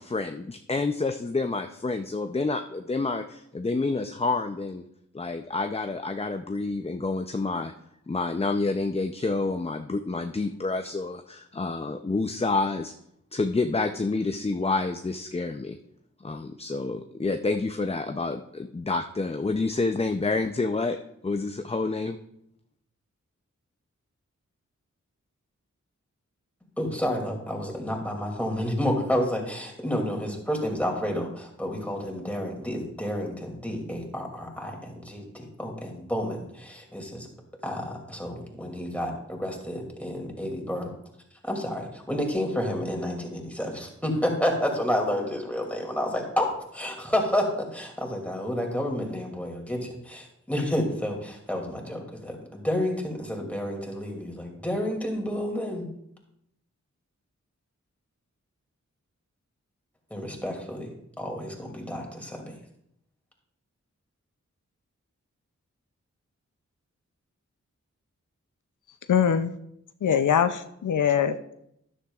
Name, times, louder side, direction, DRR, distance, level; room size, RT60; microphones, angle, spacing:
voice 1, 0.0-4.9 5.1-7.7 8.1-12.9 13.3-15.8 16.2-21.0 21.2-22.2, left 3 dB, 20° left, 7 dB, 0.5 m, -28 dB
voice 2, 26.8-37.3 37.6-40.9 41.4-55.9 60.1-62.5, left 1 dB, 5° left, 1 dB, 2.5 m, -30 dB
voice 3, 69.1-69.5 70.0-71.5, left 8 dB, 85° left, 10 dB, 0.5 m, -23 dB
13.0 x 10.0 x 2.4 m, 0.76 s
cardioid pair, 50°, 30 cm